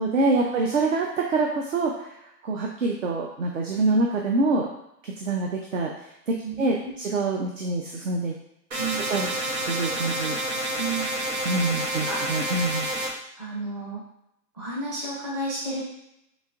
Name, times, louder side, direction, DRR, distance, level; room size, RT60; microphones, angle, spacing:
voice 1, 0.0-2.1 2.4-4.7 5.0-5.9 6.3-8.3 9.1-9.3 9.6-10.7 11.4-12.9, right 3 dB, 50° right, 0 dB, 0.5 m, -26 dB
voice 2, 6.4-6.9 8.8-9.0 10.8-11.1 12.0-12.6 13.4-14.0 14.6-15.8, right 2 dB, 20° right, -7 dB, 0.7 m, -32 dB
sound 1, 8.7-13.1, right 1 dB, 85° right, 1.4 m, -29 dB
4.0 x 2.9 x 2.3 m, 0.81 s
hypercardioid pair, 150°, 50 cm